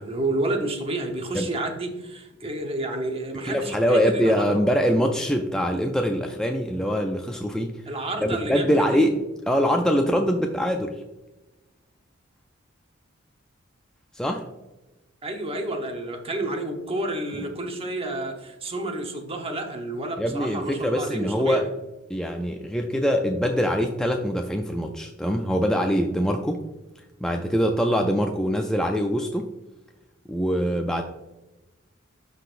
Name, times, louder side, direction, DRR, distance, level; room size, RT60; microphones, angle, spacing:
voice 1, 0.0-4.7 7.9-9.1 15.2-21.6, right 2 dB, 30° right, 3 dB, 0.9 m, -30 dB
voice 2, 3.4-7.8 8.2-11.0 14.1-14.5 17.3-17.5 20.2-21.7 22.1-26.6 27.2-29.5 30.3-31.0, equal, 5° left, 2 dB, 0.3 m, -23 dB
12.0 x 4.0 x 2.5 m, 1.1 s
head